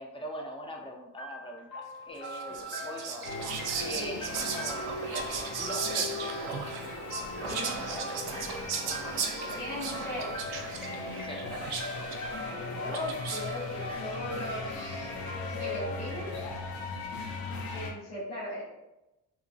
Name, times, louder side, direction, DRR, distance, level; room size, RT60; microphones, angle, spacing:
voice 1, 0.0-3.3 3.8-5.3 5.6-6.7 7.4-8.2 11.2-11.5 13.7-14.1, equal, 15° left, 1 dB, 0.3 m, -42 dB
sound 1, 1.2-17.0, equal, 50° left, 1.2 m, -43 dB
Whispering, 2.2-13.7, right 6 dB, 75° right, 0.5 m, -37 dB
sound 2, 3.2-17.9, left 3 dB, 65° left, 0.6 m, -38 dB
voice 2, 9.6-10.3 12.5-15.1 15.5-16.5 17.7-18.7, equal, 85° left, -11 dB, 1.4 m, -38 dB
2.8 x 2.2 x 2.6 m, 0.93 s
cardioid pair, 120°, 38 cm